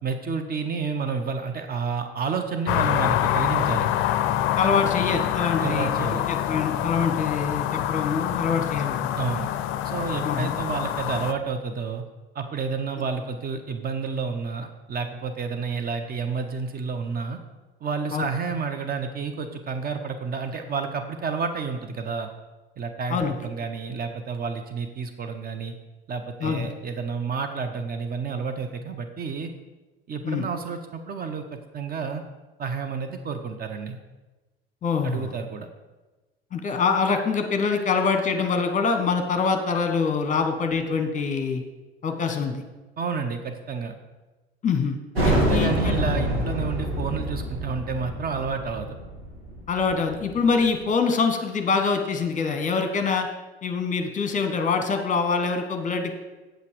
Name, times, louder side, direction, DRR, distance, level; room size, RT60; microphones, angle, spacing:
voice 1, 0.0-3.9 5.6-6.2 9.2-9.5 9.8-12.0 12.3-17.4 17.8-22.3 22.8-25.7 26.1-29.5 30.1-32.2 32.6-34.0 35.0-35.7 43.0-43.9 45.3-49.0, right 5 dB, 30° right, 6 dB, 0.8 m, -30 dB
sound 1, 2.7-11.3, left 12 dB, 40° left, 0.5 m, -26 dB
voice 2, 4.6-9.1 10.2-10.5 18.1-18.3 23.1-23.3 26.4-26.7 30.2-30.4 34.8-35.3 36.5-41.6 42.0-42.6 44.6-46.0 49.7-53.3 53.6-56.1, left 5 dB, 25° left, 6 dB, 1.2 m, -25 dB
sound 2, 45.1-50.5, right 1 dB, 80° right, 2.8 m, -26 dB
8.3 x 7.8 x 4.9 m, 1.2 s
figure-of-eight pair, 65°, 30 cm